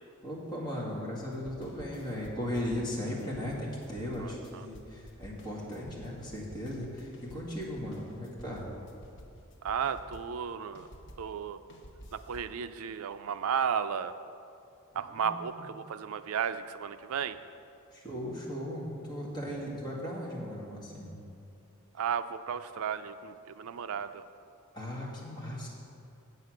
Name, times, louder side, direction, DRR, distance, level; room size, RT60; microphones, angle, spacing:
voice 1, 0.2-8.7 14.9-15.6 17.9-21.2 24.7-25.7, left 1 dB, 20° left, -5 dB, 2.0 m, -37 dB
sound 1, 1.2-11.3 11.7-12.6, equal, 55° left, 0.9 m, -51 dB
voice 2, 9.6-10.9 11.2-11.6 12.1-14.1 15.0-17.4 22.0-24.2, right 7 dB, 70° right, 12 dB, 0.4 m, -34 dB
8.2 x 7.7 x 6.3 m, 2.5 s
head